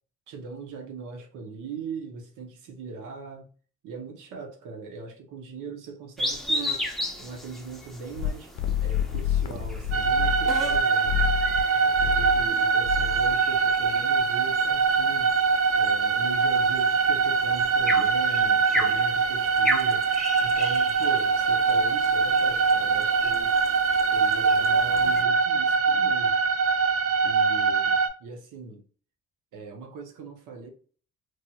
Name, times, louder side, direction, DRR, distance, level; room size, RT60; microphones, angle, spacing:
voice 1, 0.3-3.5 3.8-6.9 7.2-8.5 8.8-11.2 11.7-15.3 15.7-20.0 20.4-23.5 24.1-26.4 27.2-28.8 29.5-30.7, right 4 dB, 85° right, 0.8 m, -40 dB
sound 1, 6.2-25.2, equal, ahead, 0.6 m, -36 dB
sound 2, 8.2-10.8 11.0-11.6 11.9-12.5 12.8-13.4, left 11 dB, 75° left, 0.6 m, -28 dB
sound 3, 9.9-28.1, right 5 dB, 50° right, 0.5 m, -23 dB
3.1 x 2.7 x 2.3 m
cardioid pair, 90°, 30 cm